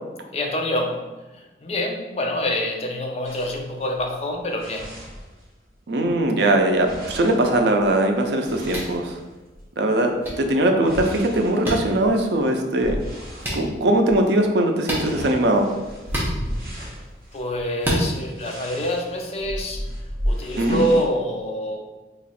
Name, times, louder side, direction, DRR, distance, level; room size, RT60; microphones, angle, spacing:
voice 1, 0.3-1.1 1.3-5.0 17.3-19.8 20.2-21.8, equal, 35° left, 1 dB, 0.4 m, -26 dB
sound 1, 3.2-5.8 6.1-9.7 10.2-13.6 14.0-14.3 14.5-21.1, equal, 50° right, 0.8 m, -35 dB
voice 2, 5.9-9.2 9.8-13.0 13.5-15.7 20.6-20.9, right 1 dB, 75° right, 4 dB, 0.5 m, -20 dB
sound 2, 8.7-8.9 10.2-10.3 11.6-11.8 13.4-13.6 14.8-15.1 16.1-16.3 17.8-18.0, equal, 15° right, 0.7 m, -25 dB
2.9 x 2.4 x 4.1 m, 1.2 s
head